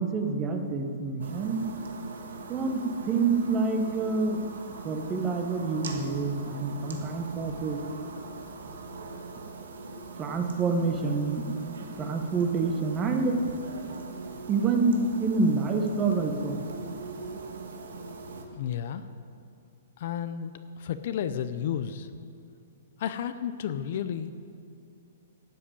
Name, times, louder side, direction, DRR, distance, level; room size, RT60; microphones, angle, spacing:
voice 1, 0.0-1.6 2.5-4.5 4.8-7.8 10.2-11.5 11.8-13.4 14.5-14.9 15.2-16.6, right 4 dB, 15° right, 4 dB, 1.2 m, -27 dB
sound 1, 1.2-18.4, right 3 dB, 85° right, 1.8 m, -41 dB
voice 2, 18.5-19.0 20.0-22.1 23.0-24.3, left 9 dB, 50° left, 11 dB, 0.6 m, -32 dB
12.5 x 7.8 x 8.6 m, 2.4 s
hypercardioid pair, 160°, 0 cm